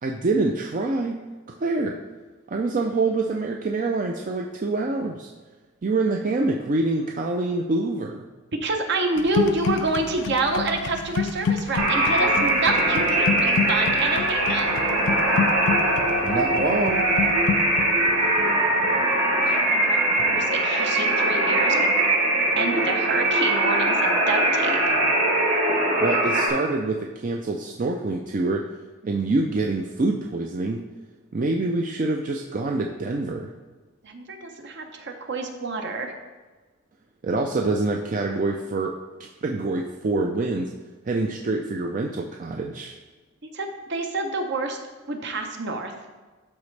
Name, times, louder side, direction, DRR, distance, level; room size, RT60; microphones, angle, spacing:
voice 1, 0.0-1.2 1.6-2.0 2.5-5.3 5.8-8.2 16.2-17.1 26.0-28.6 29.0-30.8 31.3-33.5 37.2-38.9 39.4-40.7 41.0-42.9, right 2 dB, 40° right, 2 dB, 0.4 m, -25 dB
voice 2, 8.6-14.7 19.5-22.0 22.6-24.9 34.0-36.1 43.5-44.8 45.1-45.9, right 3 dB, 55° right, 4 dB, 0.8 m, -28 dB
sound 1, 9.1-21.0 21.3-21.7, left 6 dB, 60° left, 0.4 m, -30 dB
sound 2, 11.8-26.5, right 1 dB, 70° right, 2.1 m, -21 dB
12.0 x 4.1 x 3.3 m, 1.3 s
head